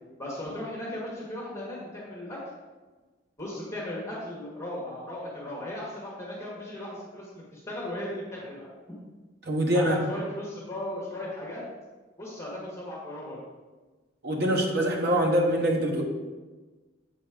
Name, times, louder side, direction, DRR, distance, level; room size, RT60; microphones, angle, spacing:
voice 1, 0.2-2.4 3.4-8.7 9.7-11.6 12.2-13.4, left 1 dB, 15° left, -6 dB, 1.5 m, -36 dB
voice 2, 9.4-10.0 14.2-16.0, equal, 55° right, 1 dB, 1.1 m, -24 dB
7.6 x 4.2 x 5.0 m, 1.3 s
head